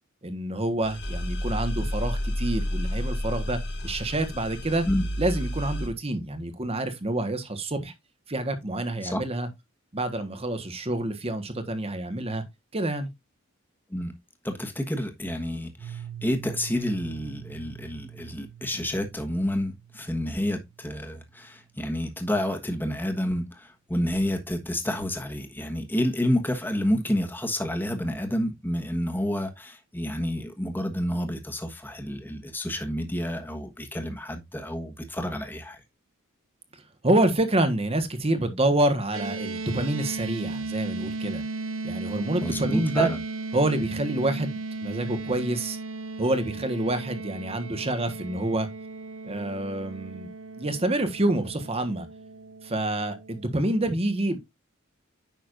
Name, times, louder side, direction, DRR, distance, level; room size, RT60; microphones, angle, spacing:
voice 1, 0.2-4.8 5.2-7.9 8.3-9.5 9.9-12.4 12.7-13.1 37.0-41.4 41.8-43.1 43.5-45.8 46.2-48.7 49.3-50.3 50.6-52.1 52.6-54.4, right 1 dB, 30° right, 1.3 m, -27 dB
sound 1, 0.8-5.9, equal, 55° left, 2.2 m, -30 dB
voice 2, 14.4-35.8 42.4-43.2, left 1 dB, 10° left, 1.3 m, -29 dB
Piano, 15.8-21.4, right 10 dB, 15° right, 1.5 m, -44 dB
sound 2, 39.1-53.5, right 3 dB, 65° right, 1.2 m, -36 dB
9.4 x 6.1 x 2.5 m
head